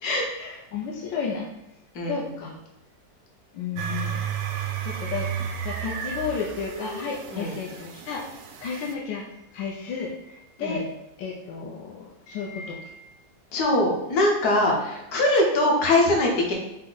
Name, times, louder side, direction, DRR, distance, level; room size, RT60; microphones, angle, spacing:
voice 1, 0.4-1.5 2.1-2.5 3.5-4.3 4.8-5.3 5.6-8.3 8.6-10.9 11.2-13.1, left 5 dB, 80° left, -2 dB, 1.3 m, -33 dB
sound 1, 3.8-8.9, right 8 dB, 70° right, 0.9 m, -32 dB
voice 2, 13.5-16.5, left 1 dB, 60° left, -1 dB, 1.4 m, -22 dB
6.0 x 2.1 x 3.8 m, 0.90 s
omnidirectional pair, 2.0 m